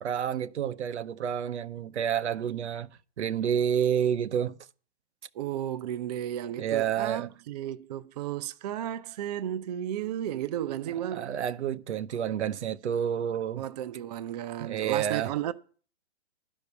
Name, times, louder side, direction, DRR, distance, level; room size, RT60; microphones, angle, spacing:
voice 1, 0.0-2.9 3.2-4.5 6.6-7.3 11.1-13.6 14.6-15.3, right 9 dB, 85° right, 0.8 m, -29 dB
voice 2, 5.3-11.4 13.6-15.5, right 11 dB, 40° right, 0.5 m, -34 dB
11.5 x 5.3 x 8.2 m
hypercardioid pair, 150°, 34 cm